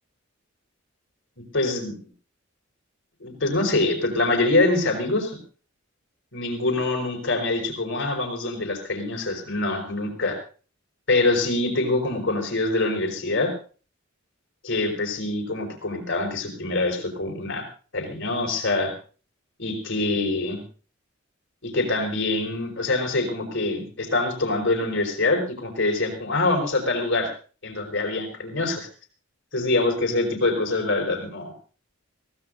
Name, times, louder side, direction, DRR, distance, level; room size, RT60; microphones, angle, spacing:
voice 1, 1.5-1.9 3.2-5.4 6.3-10.4 11.1-13.5 14.6-17.6 17.9-18.9 19.6-20.6 21.6-27.3 27.6-28.9 29.5-31.5, left 2 dB, 65° left, 3 dB, 5.1 m, -24 dB
23.0 x 17.5 x 2.7 m, 0.39 s
head